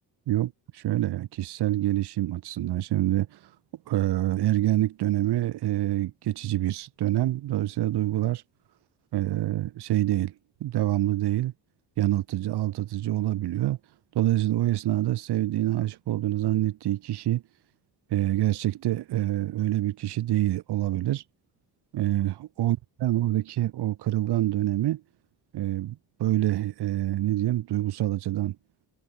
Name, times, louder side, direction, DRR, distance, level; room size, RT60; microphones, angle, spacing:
voice 1, 0.3-3.4 3.9-8.4 9.1-10.3 10.6-11.5 12.0-13.8 14.1-17.4 18.1-21.2 21.9-25.0 25.5-28.6, right 14 dB, 80° right, 0.8 m, -26 dB
cardioid pair, 95°, 39 cm